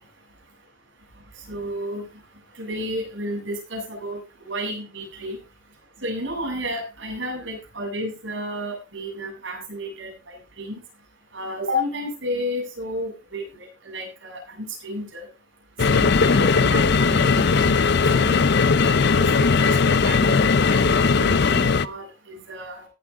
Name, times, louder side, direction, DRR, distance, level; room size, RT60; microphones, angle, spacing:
voice 1, 1.5-2.1 2.6-5.4 6.0-10.8 11.3-15.3 15.9-17.8 18.1-18.7 19.1-22.9, equal, 65° right, -1 dB, 7.8 m, -32 dB
sound 1, 15.8-21.9, left 4 dB, 55° left, 0.5 m, -18 dB
18.0 x 8.7 x 3.6 m, 0.29 s
head